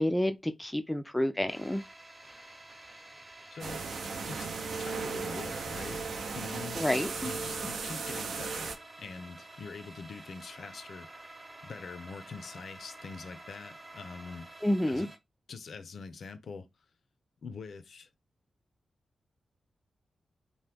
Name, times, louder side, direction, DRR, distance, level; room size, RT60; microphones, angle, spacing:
voice 1, 0.0-1.8 6.7-7.3 14.6-15.1, left 1 dB, 10° left, 0.3 m, -29 dB
sound 1, 1.5-15.2, right 2 dB, 20° right, 0.7 m, -50 dB
voice 2, 3.5-3.8 4.3-4.5 4.8-6.0 6.3-6.8 7.2-8.7 9.0-11.1 11.6-14.5 14.9-15.1 15.5-16.7 17.4-18.1, left 5 dB, 70° left, 0.5 m, -44 dB
sound 2, 3.6-8.8, right 4 dB, 75° right, 0.5 m, -36 dB
2.9 x 2.1 x 3.4 m
wide cardioid pair, 125°, 0 cm